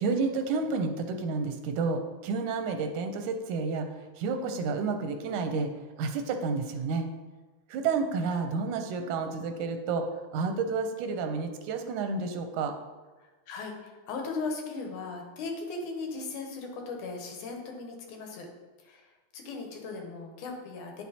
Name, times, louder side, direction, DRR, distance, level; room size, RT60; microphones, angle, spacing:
voice 1, 0.0-3.9 4.2-5.7 6.0-7.1 7.7-10.0 10.3-12.7, right 4 dB, 90° right, 6 dB, 2.3 m, -30 dB
voice 2, 13.5-18.5 18.8-19.0 19.3-21.0, left 3 dB, 85° left, 2 dB, 2.7 m, -37 dB
9.7 x 6.0 x 4.2 m, 1.2 s
omnidirectional pair, 3.4 m